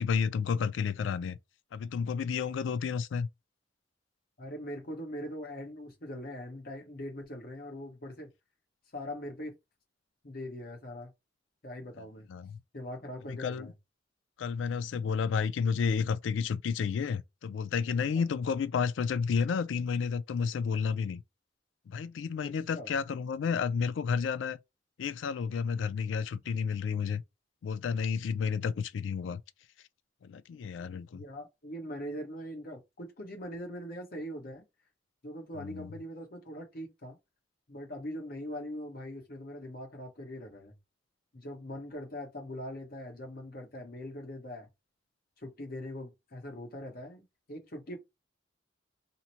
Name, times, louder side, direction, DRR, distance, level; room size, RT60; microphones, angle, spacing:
voice 1, 0.0-1.4 1.7-3.3 12.3-12.6 13.3-13.7 14.4-21.2 21.9-24.6 25.0-27.2 27.6-29.4 30.2-31.2 35.6-35.9, left 6 dB, 90° left, 0.3 m, -31 dB
voice 2, 4.4-8.3 8.9-9.6 10.2-11.1 11.6-12.3 12.7-13.7 18.1-18.2 22.4-22.9 31.1-34.6 35.2-37.2 37.7-40.7 41.3-44.7 45.4-48.0, equal, 55° left, 1.0 m, -41 dB
2.8 x 2.1 x 2.8 m
head